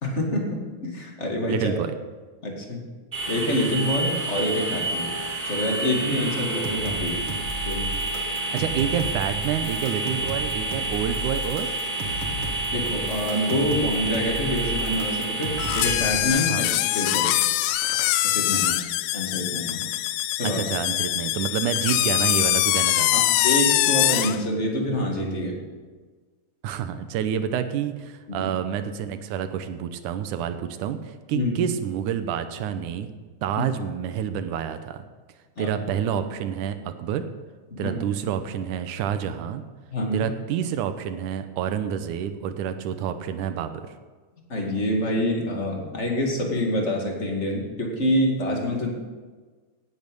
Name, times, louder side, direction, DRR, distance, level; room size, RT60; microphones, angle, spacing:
voice 1, 0.0-1.8 2.4-2.8 3.3-5.1 5.4-7.2 7.7-7.9 12.7-17.3 18.2-18.7 19.1-19.8 20.3-20.6 23.1-25.6 28.3-28.5 31.3-31.5 35.6-35.8 37.7-38.0 39.9-40.3 44.5-48.9, equal, 25° left, 0 dB, 2.1 m, -26 dB
voice 2, 1.5-1.9 8.3-11.7 16.5-16.7 18.5-18.8 20.4-23.2 26.6-33.1 33.4-35.0 35.6-37.2 37.8-39.6 40.1-43.9, right 9 dB, 80° right, 10 dB, 2.3 m, -28 dB
sound 1, 3.1-15.9, right 2 dB, 15° right, 3.5 m, -29 dB
sound 2, 6.5-16.3, right 2 dB, 50° right, 2.2 m, -34 dB
sound 3, 15.6-24.4, left 15 dB, 80° left, 2.0 m, -23 dB
17.5 x 8.6 x 5.3 m, 1.4 s
omnidirectional pair, 3.6 m